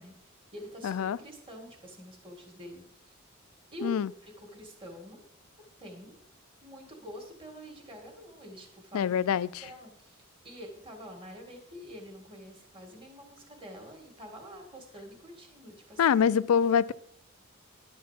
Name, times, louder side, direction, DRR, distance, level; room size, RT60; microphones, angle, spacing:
voice 1, 0.0-3.2 3.7-3.9 4.2-5.2 5.8-6.3 6.6-9.1 9.6-16.2, equal, 25° right, 1.9 m, -47 dB
voice 2, 0.8-1.2 3.8-4.1 8.9-9.6 16.0-16.9, left 7 dB, 85° left, 0.4 m, -25 dB
11.0 x 4.3 x 7.3 m
head